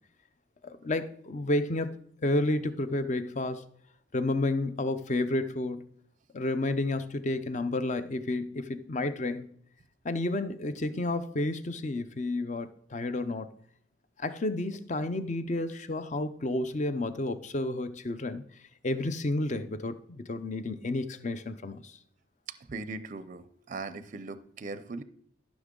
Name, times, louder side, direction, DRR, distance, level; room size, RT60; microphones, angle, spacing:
voice 1, 0.6-1.9 2.2-3.6 4.1-5.9 6.3-9.5 10.0-13.5 14.2-18.4 18.8-22.0, left 2 dB, 35° left, 12 dB, 0.5 m, -31 dB
voice 2, 22.7-25.0, right 3 dB, 40° right, 14 dB, 0.5 m, -39 dB
13.5 x 6.2 x 3.7 m, 0.66 s
head